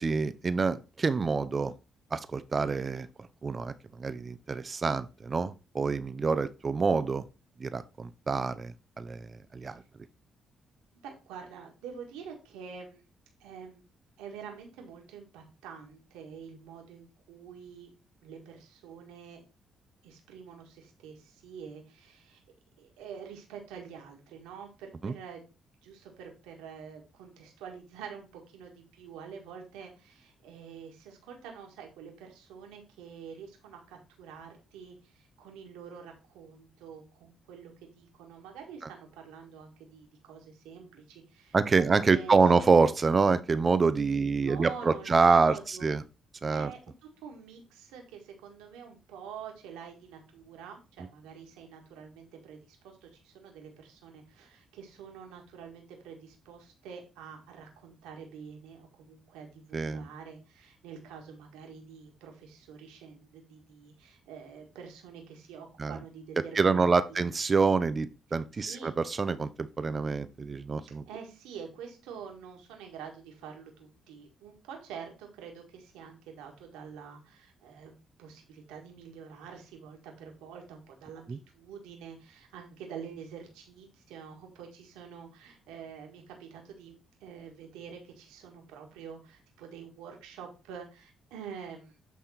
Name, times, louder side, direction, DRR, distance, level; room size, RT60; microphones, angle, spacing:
voice 1, 0.0-1.7 2.1-3.1 3.4-7.2 7.6-8.7 9.0-9.8 25.0-25.1 41.5-46.0 46.4-46.7 59.7-60.0 65.8-66.0 66.5-71.0 81.3-81.4, right 4 dB, 40° right, 13 dB, 0.6 m, -26 dB
voice 2, 11.0-13.0 13.4-13.8 14.2-17.9 18.2-19.4 20.0-22.4 22.8-25.4 25.8-42.4 44.1-45.9 46.5-46.8 47.2-67.3 68.5-68.9 71.1-86.9 87.2-92.0, right 7 dB, 80° right, 2 dB, 1.7 m, -47 dB
8.7 x 3.6 x 4.3 m, 0.30 s
hypercardioid pair, 50°, 0 cm